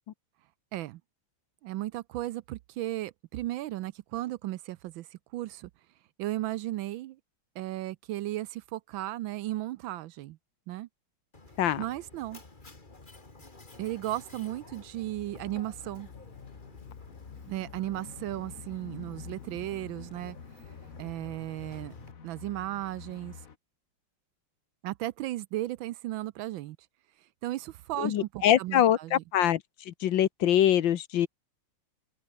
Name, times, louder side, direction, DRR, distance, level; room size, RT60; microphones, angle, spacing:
voice 1, 1.6-5.7 6.2-7.2 7.6-10.4 10.7-10.9 11.8-12.4 13.8-16.1 17.5-20.4 21.0-21.9 22.2-23.3 24.8-26.8 27.4-29.2, right 15 dB, 75° right, 1.3 m, -35 dB
Mechanisms, 11.3-22.1, left 3 dB, 25° left, 2.5 m, -51 dB
sound 1, 15.1-23.6, left 6 dB, 45° left, 1.8 m, -48 dB
voice 2, 28.0-29.6 29.9-31.3, left 11 dB, 65° left, 1.6 m, -24 dB
open air
omnidirectional pair, 2.3 m